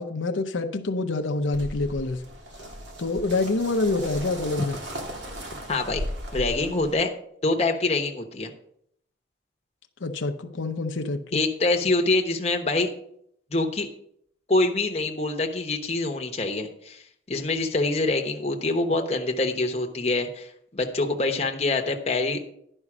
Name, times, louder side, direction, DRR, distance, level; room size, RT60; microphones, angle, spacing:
voice 1, 0.0-2.2 3.0-4.8 10.0-11.4, left 3 dB, 85° left, 7 dB, 0.7 m, -26 dB
sound 1, 1.5-6.9, equal, 70° right, 1.8 m, -36 dB
voice 2, 5.7-6.0 6.3-7.1 7.4-8.5 11.3-12.9 13.5-13.9 14.5-22.4, left 2 dB, 35° left, 3 dB, 1.0 m, -25 dB
11.0 x 5.4 x 6.0 m, 0.70 s
head